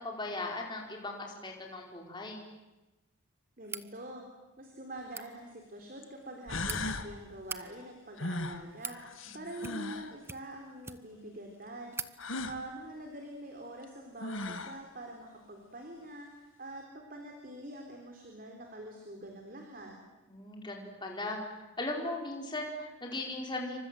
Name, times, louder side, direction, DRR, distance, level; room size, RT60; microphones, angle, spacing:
voice 1, 0.0-2.4 9.3-9.7 20.3-23.8, left 2 dB, 20° left, 1 dB, 4.9 m, -38 dB
sound 1, 3.6-3.9 5.0-5.3 6.2-6.8 7.3-7.6 8.4-9.0 9.6-10.0 10.2-11.2 11.5-11.6 11.9-12.1, right 4 dB, 10° right, 0.9 m, -42 dB
voice 2, 3.6-4.3 4.6-9.0 9.3-20.0, right 1 dB, 40° right, 2 dB, 3.9 m, -45 dB
sound 2, 5.0-5.1 6.0-6.1 6.5-7.1 8.2-10.1 12.2-12.6 13.8-13.9 14.2-14.8, left 2 dB, 75° left, 1.9 m, -37 dB
28.5 x 25.0 x 7.8 m, 1.1 s
head